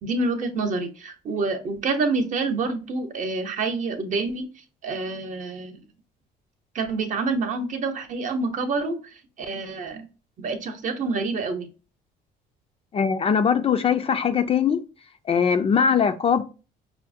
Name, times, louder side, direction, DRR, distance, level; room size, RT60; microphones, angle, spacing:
voice 1, 0.0-4.5 4.8-5.8 6.7-9.0 9.4-10.1 10.4-11.7, right 3 dB, 50° right, 0.8 m, -27 dB
voice 2, 12.9-14.8 15.3-16.4, left 7 dB, 35° left, 0.4 m, -21 dB
5.5 x 2.1 x 2.6 m
cardioid pair, 110°, 17 cm